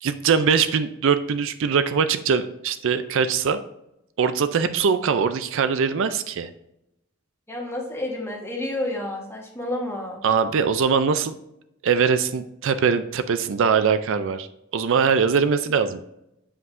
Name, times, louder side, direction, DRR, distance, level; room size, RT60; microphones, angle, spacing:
voice 1, 0.0-3.6 4.2-6.5 10.2-11.3 11.8-14.5 14.7-16.0, right 6 dB, 65° right, 11 dB, 0.4 m, -22 dB
voice 2, 7.5-10.2, left 1 dB, 10° left, -1 dB, 1.3 m, -30 dB
7.4 x 5.5 x 2.6 m, 0.84 s
head